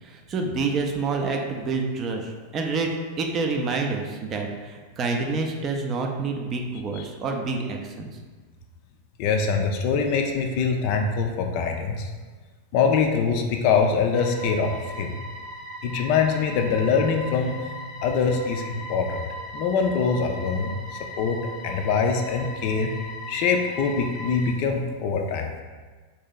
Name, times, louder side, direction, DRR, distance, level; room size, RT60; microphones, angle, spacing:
voice 1, 0.0-2.9 3.2-8.2, right 4 dB, 30° right, 2 dB, 0.4 m, -28 dB
voice 2, 9.2-12.1 12.7-15.2 15.8-17.6 18.0-19.2 19.5-20.7 21.2-22.9 23.3-25.5, left 5 dB, 45° left, 3 dB, 0.4 m, -23 dB
sound 1, 14.1-24.5, left 1 dB, ahead, 0.7 m, -38 dB
3.1 x 2.7 x 3.7 m, 1.4 s
figure-of-eight pair, 90°, 0 cm